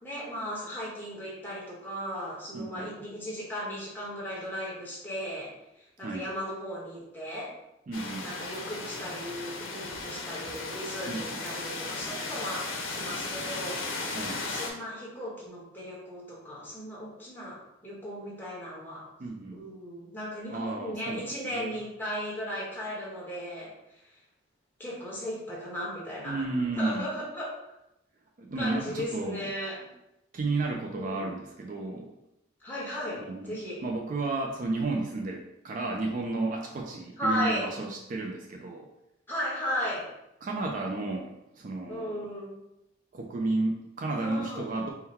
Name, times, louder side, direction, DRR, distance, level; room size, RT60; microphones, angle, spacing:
voice 1, 0.0-5.5 6.0-7.5 8.2-13.8 14.3-17.6 17.8-19.0 19.5-23.7 24.8-27.5 28.5-29.9 30.8-31.3 32.6-33.8 37.2-37.7 39.3-40.0 41.9-42.6 44.2-44.7, equal, 10° left, -6 dB, 1.2 m, -36 dB
voice 2, 2.5-2.9 6.0-6.3 7.9-8.3 11.1-11.4 14.1-14.5 19.2-19.6 20.5-21.2 21.5-21.7 26.2-27.1 28.4-29.5 30.3-32.1 33.2-38.9 40.4-42.3 43.1-44.9, right 2 dB, 45° right, 1 dB, 0.4 m, -32 dB
sound 1, 7.9-14.7, left 3 dB, 90° left, 0.7 m, -36 dB
3.8 x 2.2 x 4.2 m, 0.87 s
head